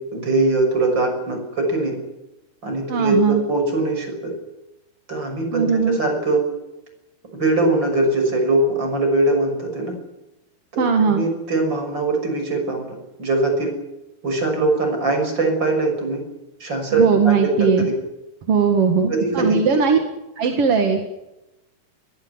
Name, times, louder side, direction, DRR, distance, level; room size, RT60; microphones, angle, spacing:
voice 1, 0.1-2.0 2.6-4.3 5.1-6.4 7.4-10.0 10.7-12.9 13.2-13.7 14.2-16.2 16.6-17.9 19.1-19.8, right 2 dB, 25° right, 3 dB, 6.6 m, -21 dB
voice 2, 2.9-3.4 5.5-6.0 10.8-11.3 16.9-17.9 18.5-20.0 20.4-21.0, right 6 dB, 45° right, 4 dB, 2.1 m, -19 dB
22.0 x 16.5 x 9.8 m, 0.95 s
omnidirectional pair, 4.6 m